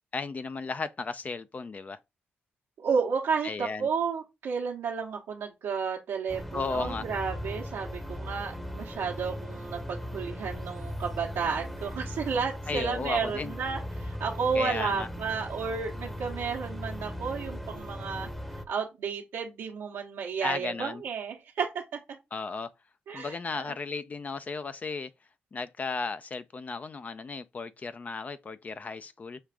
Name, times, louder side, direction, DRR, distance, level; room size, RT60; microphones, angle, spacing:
voice 1, 0.1-2.0 3.4-3.9 6.5-7.1 12.7-13.5 14.5-15.1 20.4-21.0 22.3-22.7 23.1-25.1 25.5-29.4, left 4 dB, 40° left, 0.4 m, -35 dB
voice 2, 2.8-18.3 18.7-21.8 23.1-23.7, right 6 dB, 85° right, 1.0 m, -32 dB
sound 1, 6.3-18.6, equal, 5° left, 0.8 m, -38 dB
6.3 x 2.4 x 3.5 m
cardioid pair, 80°, 4 cm